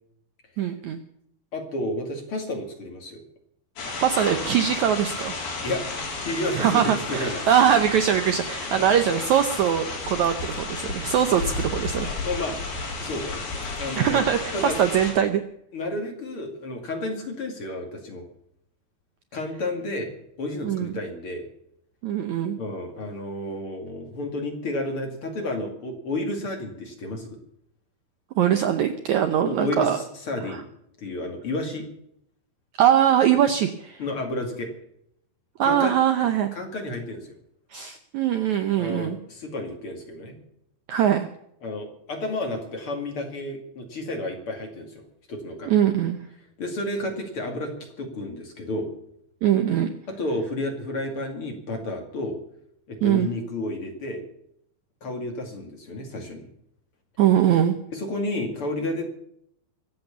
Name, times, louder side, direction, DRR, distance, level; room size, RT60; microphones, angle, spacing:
voice 1, 0.6-1.0 4.0-5.3 6.6-12.2 14.0-15.4 20.6-20.9 22.0-22.6 28.4-30.0 30.5-30.6 32.8-34.0 35.6-36.5 37.7-39.2 40.9-41.3 45.7-46.2 49.4-49.9 53.0-53.3 57.2-57.8, right 9 dB, 90° right, 8 dB, 1.6 m, -22 dB
voice 2, 1.5-3.2 5.6-5.8 6.2-7.5 8.7-8.9 11.3-11.4 12.0-12.6 13.0-13.5 13.8-14.8 15.7-18.2 19.3-21.5 22.6-27.3 29.5-30.6 31.0-31.9 34.0-34.7 35.6-35.9 36.2-37.3 38.8-40.4 41.6-45.7 46.6-47.7 48.0-48.9 50.2-52.4 52.9-54.2 55.0-56.5 57.9-59.0, left 1 dB, 40° left, 3 dB, 2.6 m, -31 dB
sound 1, 3.8-15.1, left 3 dB, 75° left, 6.2 m, -32 dB
24.0 x 8.0 x 7.0 m, 0.74 s
omnidirectional pair, 4.5 m